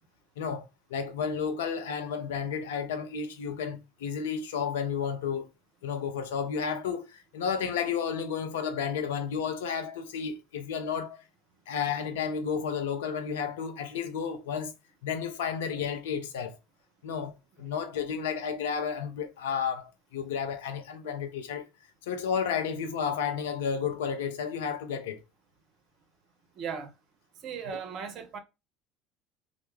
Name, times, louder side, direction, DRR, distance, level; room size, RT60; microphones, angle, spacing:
voice 1, 0.4-5.5 5.8-11.2 11.7-14.7 15.0-16.6 17.0-21.7 22.1-25.2, left 7 dB, 75° left, 0.5 m, -32 dB
voice 2, 26.6-26.9 27.4-28.4, right 6 dB, 50° right, 0.5 m, -37 dB
2.1 x 2.0 x 3.1 m
hypercardioid pair, 70°, 0 cm